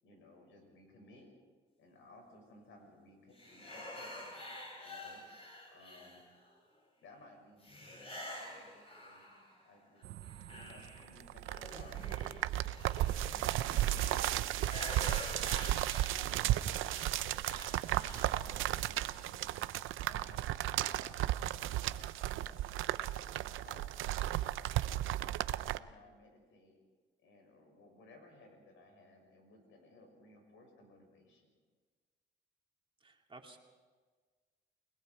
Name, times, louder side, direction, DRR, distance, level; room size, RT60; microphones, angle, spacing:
voice 1, 0.0-1.3 1.8-6.2 7.0-9.3 9.6-12.5 12.9-14.5 14.9-15.4 15.8-22.7 23.1-25.2 25.6-26.8 27.2-31.5, left 2 dB, 80° left, 3 dB, 6.3 m, -60 dB
sound 1, 3.4-6.5 7.6-9.6 10.0-18.4, left 1 dB, 30° left, 6.7 m, -48 dB
sound 2, 10.0-25.8, right 14 dB, 85° right, 0.6 m, -35 dB
voice 2, 33.0-33.6, right 2 dB, 25° right, 1 dB, 2.8 m, -54 dB
29.5 x 20.0 x 4.8 m, 1.4 s
cardioid pair, 90°, 20 cm